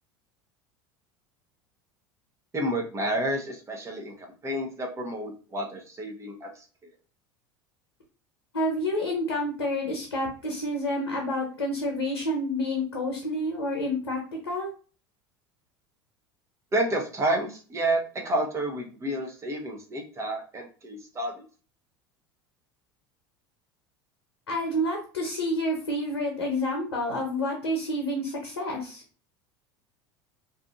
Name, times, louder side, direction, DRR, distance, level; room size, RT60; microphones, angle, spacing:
voice 1, 2.5-6.6 16.7-21.4, right 1 dB, 20° right, 2 dB, 0.9 m, -30 dB
voice 2, 8.5-14.7 24.5-29.0, left 1 dB, 85° left, 0 dB, 0.7 m, -29 dB
2.7 x 2.5 x 2.4 m, 0.37 s
hypercardioid pair, 80°, 13 cm